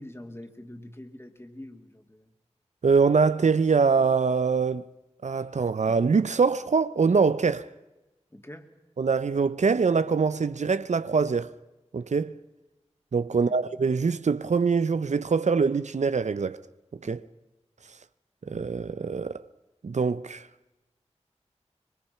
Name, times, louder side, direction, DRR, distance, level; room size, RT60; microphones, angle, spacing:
voice 1, 0.0-2.3 8.3-8.7 13.3-13.6 17.0-17.2, left 1 dB, 20° left, 2.6 m, -44 dB
voice 2, 2.8-4.9 5.2-7.7 9.0-11.5 11.9-12.4 13.1-16.6 17.0-17.2 18.5-19.4 19.8-20.5, right 5 dB, 85° right, 0.6 m, -24 dB
25.0 x 22.5 x 5.7 m
wide cardioid pair, 45°, 12 cm